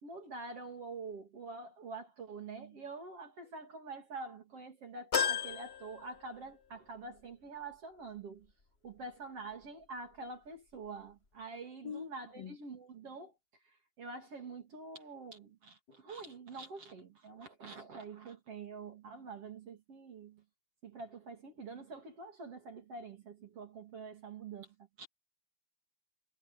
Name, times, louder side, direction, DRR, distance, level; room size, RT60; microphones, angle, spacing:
voice 1, 0.0-8.5 8.8-13.4 13.6-20.4 20.8-25.1, right 4 dB, 45° right, 3.6 m, -46 dB
sound 1, 5.1-6.8 7.2-7.3 8.5-8.6, left 7 dB, 90° left, 0.5 m, -35 dB
voice 2, 11.8-12.6 15.9-16.0, left 7 dB, 30° left, 3.5 m, -44 dB
omnidirectional pair, 4.0 m